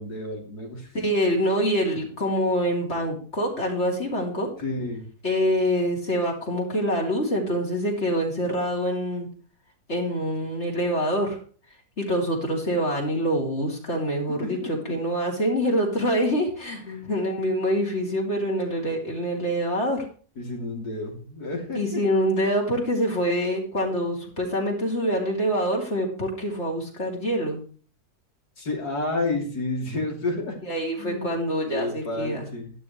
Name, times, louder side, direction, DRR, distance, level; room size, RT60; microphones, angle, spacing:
voice 1, 0.0-1.0 4.6-5.0 14.3-14.9 16.9-17.2 20.4-22.0 28.6-30.6 31.0-31.3 31.6-32.7, left 2 dB, 80° left, -1 dB, 3.5 m, -31 dB
voice 2, 0.9-4.5 5.2-9.3 9.9-11.4 12.0-20.0 21.7-27.6 30.7-32.4, equal, 45° left, -1 dB, 3.4 m, -25 dB
12.0 x 12.0 x 3.2 m, 0.42 s
omnidirectional pair, 1.7 m